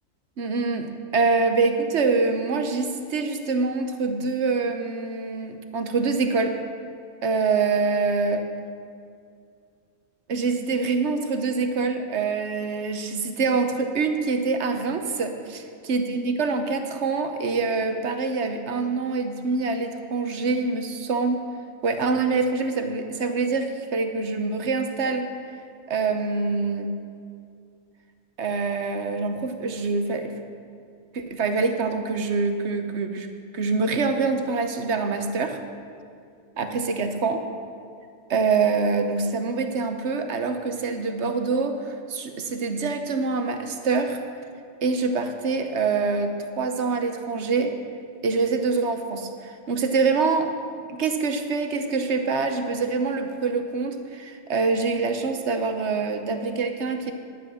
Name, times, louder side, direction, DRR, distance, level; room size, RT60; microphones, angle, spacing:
voice 1, 0.4-6.5 7.2-8.4 10.3-21.4 21.8-25.3 25.9-26.9 28.4-30.3 31.1-35.6 36.6-37.4 38.3-44.2 44.8-47.7 48.2-50.5 50.9-57.1, right 4 dB, 60° right, 6 dB, 1.1 m, -25 dB
10.5 x 10.0 x 6.2 m, 2.3 s
omnidirectional pair, 1.4 m